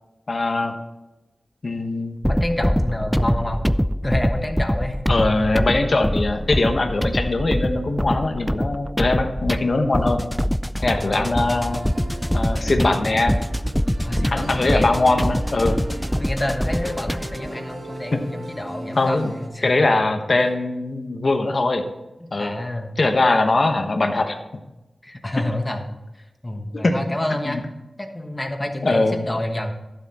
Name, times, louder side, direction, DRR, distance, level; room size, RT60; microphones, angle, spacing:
voice 1, 0.3-0.7 1.6-2.2 5.1-10.3 10.8-11.8 12.3-13.4 14.3-15.8 18.1-18.2 18.9-19.3 19.6-21.8 22.3-22.6 23.0-24.4 26.7-27.0 27.3-27.6 28.8-29.3, left 2 dB, 55° left, 6 dB, 1.1 m, -21 dB
sound 1, 2.2-17.5, equal, 5° left, 0.4 m, -24 dB
voice 2, 2.3-3.6 4.0-5.7 10.9-11.4 14.0-14.9 15.7-15.8 16.2-20.0 22.2-23.0 25.0-26.0 26.4-27.6 28.0-29.7, left 1 dB, 25° left, 4 dB, 1.3 m, -29 dB
sound 2, 11.4-19.5, right 1 dB, 85° right, 2.6 m, -36 dB
12.0 x 7.6 x 4.2 m, 1.0 s
wide cardioid pair, 80°, 0 cm